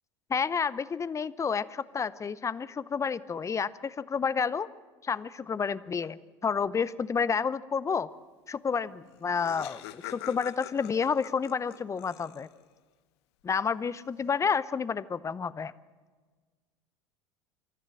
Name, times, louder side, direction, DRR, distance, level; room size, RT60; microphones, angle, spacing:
voice 1, 0.3-4.7 5.0-8.1 8.5-12.5 13.4-15.7, left 6 dB, 20° left, 18 dB, 0.7 m, -30 dB
Laughter, 8.8-8.9 9.1-12.7, left 15 dB, 60° left, 0.9 m, -45 dB
26.0 x 14.0 x 7.6 m, 1.4 s
figure-of-eight pair, 75°, 15 cm